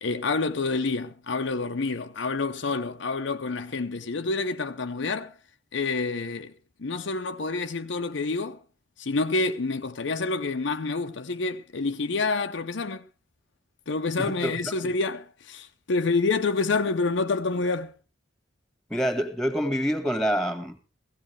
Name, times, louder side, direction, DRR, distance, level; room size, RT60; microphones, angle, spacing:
voice 1, 0.0-5.3 5.7-6.5 6.8-8.6 9.0-13.0 13.9-17.9, left 3 dB, 60° left, 0.7 m, -28 dB
voice 2, 14.2-14.5 14.8-14.9 18.9-20.9, equal, 5° left, 1.6 m, -27 dB
17.0 x 15.5 x 3.2 m
head